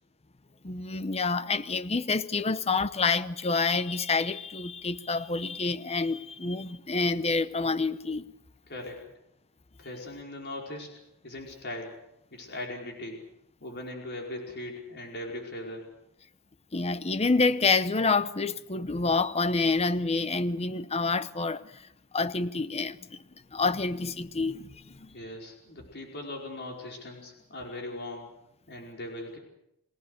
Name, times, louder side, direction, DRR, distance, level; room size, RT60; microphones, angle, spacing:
voice 1, 0.6-8.2 16.7-21.9 22.1-23.2 23.5-25.1, left 4 dB, 30° left, 0.8 m, -28 dB
voice 2, 8.7-9.0 9.8-10.9 11.2-11.9 12.3-13.2 13.6-15.9 24.9-28.3 28.7-29.4, left 1 dB, 50° left, 4.9 m, -39 dB
29.5 x 18.5 x 6.6 m
head